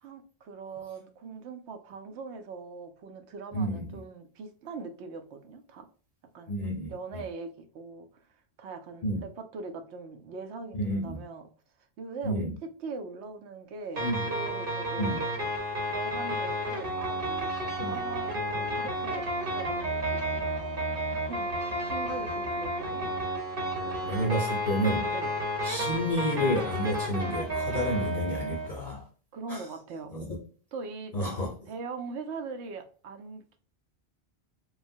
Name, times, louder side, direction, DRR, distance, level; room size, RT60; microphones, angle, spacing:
voice 1, 0.0-5.9 6.3-6.6 6.9-8.1 8.6-11.5 12.0-15.3 15.8-17.5 17.7-23.1 23.9-24.3 25.1-25.3 29.3-30.1 30.7-31.1 31.7-33.6, right 4 dB, 80° right, 0.9 m, -41 dB
voice 2, 3.5-4.0 6.5-7.2 9.0-9.2 10.8-11.2 12.2-12.5 14.0-14.2 15.0-15.2 17.8-18.0 24.0-25.1 25.6-29.1 29.5-29.7 30.1-30.4 31.1-31.7, equal, 45° left, 0.6 m, -30 dB
sound 1, 14.0-28.7, equal, 55° right, 1.1 m, -31 dB
3.1 x 2.3 x 2.5 m
omnidirectional pair, 1.1 m